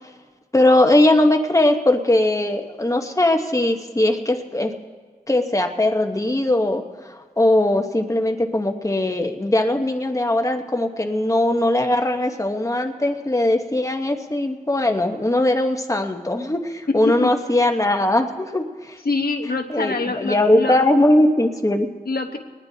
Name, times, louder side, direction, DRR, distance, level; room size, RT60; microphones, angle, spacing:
voice 1, 0.5-4.7 5.3-19.0 19.7-21.9, left 1 dB, 20° left, 4 dB, 1.0 m, -20 dB
voice 2, 19.0-20.8 22.1-22.4, left 3 dB, 70° left, 4 dB, 1.1 m, -25 dB
22.5 x 19.5 x 2.8 m, 1.5 s
wide cardioid pair, 55°, 16 cm